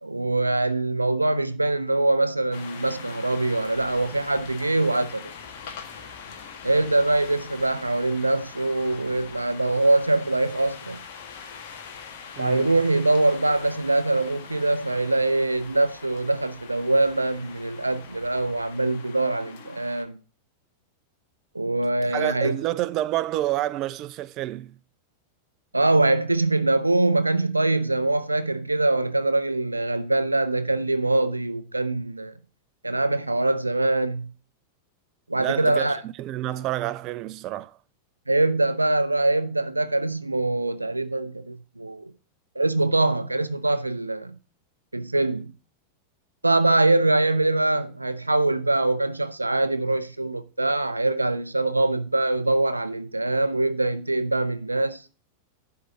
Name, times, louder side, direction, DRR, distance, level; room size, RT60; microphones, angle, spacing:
voice 1, 0.0-5.3 6.6-11.0 12.4-20.1 21.5-22.6 25.7-32.3 32.8-34.3 35.3-36.0 38.3-42.1 42.6-44.3 44.9-45.5 46.4-55.0, right 2 dB, 85° right, 0.5 m, -23 dB
sound 1, 2.5-20.0, left 6 dB, 50° left, 1.6 m, -43 dB
voice 2, 12.4-12.7 22.1-24.7 35.4-37.8, right 14 dB, 35° right, 0.5 m, -29 dB
11.5 x 3.8 x 6.9 m
figure-of-eight pair, 90°, 0 cm